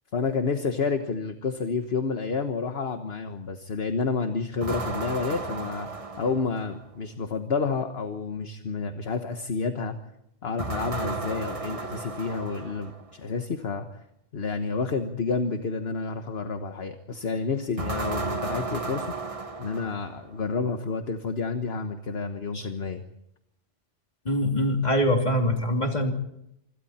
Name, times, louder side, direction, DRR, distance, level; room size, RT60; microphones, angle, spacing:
voice 1, 0.1-9.9 10.4-13.9 14.3-23.0, left 4 dB, 55° left, 7 dB, 1.5 m, -30 dB
Metal Impact, 4.6-6.9 10.6-13.1 17.8-20.4, right 3 dB, 30° right, 1.5 m, -34 dB
voice 2, 24.2-26.1, left 1 dB, 35° left, 3 dB, 3.1 m, -24 dB
27.0 x 25.5 x 4.3 m, 0.80 s
omnidirectional pair, 1.2 m